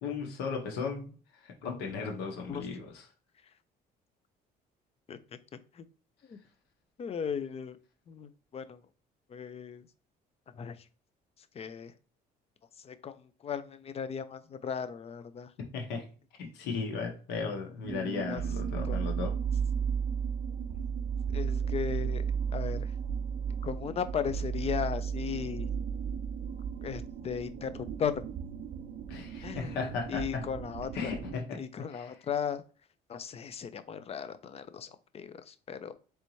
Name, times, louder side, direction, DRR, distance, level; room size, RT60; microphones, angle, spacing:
voice 1, 0.0-3.0 15.7-16.0 16.4-19.3 29.1-30.4 30.9-31.6 31.9-32.1, left 5 dB, 85° left, 2 dB, 1.4 m, -36 dB
voice 2, 7.0-7.8 8.1-8.8 9.3-9.9 10.5-10.9 11.5-11.9 12.8-15.5 18.3-18.4 18.8-19.0 21.3-22.9 23.6-25.7 26.8-28.2 29.4-31.1 31.6-32.6 33.1-35.9, left 7 dB, 35° left, 12 dB, 0.5 m, -36 dB
sound 1, 17.8-31.4, right 7 dB, 55° right, 0.5 m, -34 dB
4.0 x 3.4 x 3.1 m, 0.38 s
cardioid pair, 110°, 17 cm